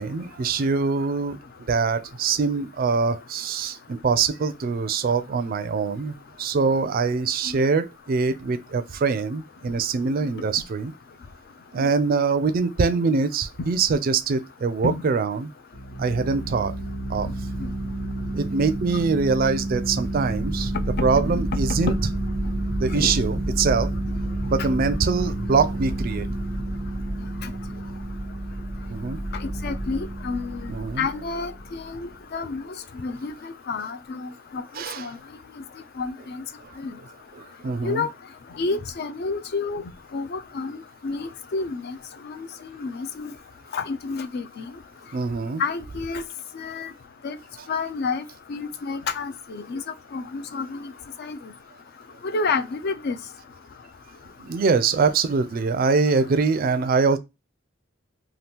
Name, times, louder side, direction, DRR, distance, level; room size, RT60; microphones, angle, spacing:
voice 1, 0.0-1.4 1.7-10.9 11.7-15.5 16.0-16.7 17.1-17.3 18.3-20.7 21.0-21.9 22.8-23.9 24.4-26.3 28.9-29.2 30.7-31.1 34.7-35.1 36.6-36.8 37.3-38.1 45.1-45.6 54.4-57.2, right 4 dB, 45° right, 0.4 m, -23 dB
sound 1, 15.7-32.0, right 1 dB, 85° left, 1.3 m, -29 dB
voice 2, 29.6-30.7 31.0-32.6 33.0-34.6 35.0-35.2 36.0-36.4 36.8-36.9 37.8-38.1 38.6-39.8 40.1-40.8 41.0-42.0 42.2-42.5 42.8-43.3 43.7-44.7 45.6-46.2 46.5-46.9 47.2-47.4 47.7-48.2 48.5-49.8 50.1-50.9 51.2-51.4 52.2-53.2, left 4 dB, 55° left, 0.4 m, -29 dB
2.8 x 2.3 x 3.4 m
head